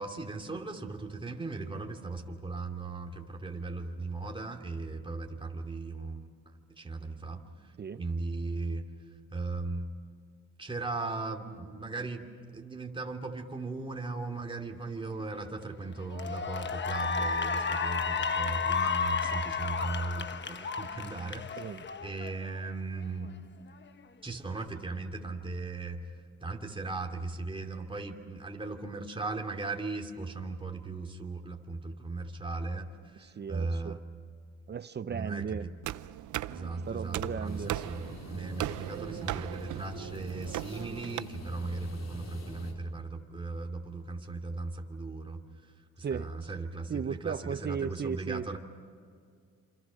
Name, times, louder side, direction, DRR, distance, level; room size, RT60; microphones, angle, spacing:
voice 1, 0.0-6.3 6.8-7.7 8.0-8.9 9.3-9.9 10.6-12.3 12.5-21.7 22.0-23.3 24.2-26.0 26.4-34.0 35.1-35.7 36.5-45.4 46.0-48.6, right 3 dB, 15° right, 3 dB, 2.8 m, -37 dB
Cheering / Applause, 15.4-15.6 16.1-22.6, left 5 dB, 35° left, 1.2 m, -32 dB
voice 2, 33.2-34.0 34.7-35.7 36.9-37.7 46.0-46.3 46.9-48.6, right 7 dB, 35° right, 15 dB, 0.6 m, -36 dB
sound 1, 35.8-41.2, right 14 dB, 75° right, 0.7 m, -38 dB
sound 2, 37.4-42.7, left 1 dB, 60° left, 4.2 m, -46 dB
28.0 x 26.5 x 6.4 m, 2.1 s
cardioid pair, 90°, 30 cm